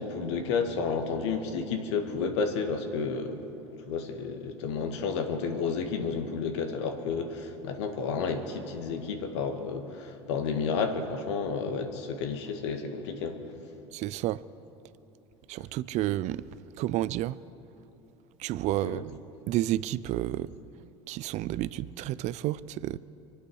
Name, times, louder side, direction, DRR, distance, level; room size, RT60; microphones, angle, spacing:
voice 1, 0.0-3.4 3.9-13.4 18.8-19.0, left 5 dB, 75° left, 5 dB, 1.7 m, -31 dB
voice 2, 13.9-14.4 15.5-16.4 16.8-17.4 18.4-19.1 19.5-20.5 21.1-23.0, right 14 dB, 50° right, 18 dB, 0.5 m, -30 dB
24.0 x 8.7 x 6.4 m, 2.9 s
hypercardioid pair, 85°, 15 cm